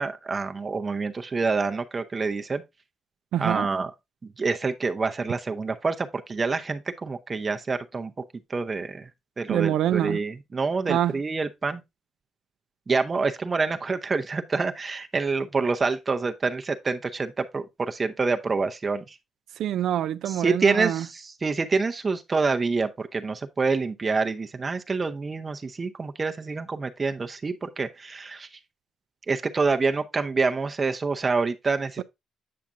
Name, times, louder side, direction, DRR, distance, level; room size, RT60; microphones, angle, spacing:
voice 1, 0.0-2.6 3.4-3.9 4.2-8.1 8.5-9.1 9.4-11.8 12.9-19.2 20.3-28.5 29.3-32.0, right 4 dB, 30° right, 0.6 m, -27 dB
voice 2, 3.3-3.7 9.5-10.2 10.9-11.1 19.6-21.1, right 11 dB, 75° right, 0.3 m, -25 dB
8.5 x 5.8 x 2.5 m
cardioid pair, 90°, 0 cm